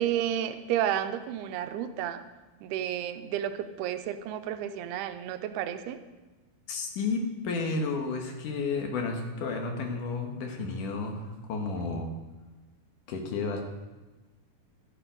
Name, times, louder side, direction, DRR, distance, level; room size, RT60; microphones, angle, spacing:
voice 1, 0.0-2.2 2.6-6.0, right 10 dB, 85° right, 10 dB, 2.7 m, -31 dB
voice 2, 6.7-12.1 13.1-13.6, left 4 dB, 65° left, 3 dB, 2.6 m, -32 dB
12.5 x 9.9 x 5.1 m, 1.2 s
omnidirectional pair, 4.5 m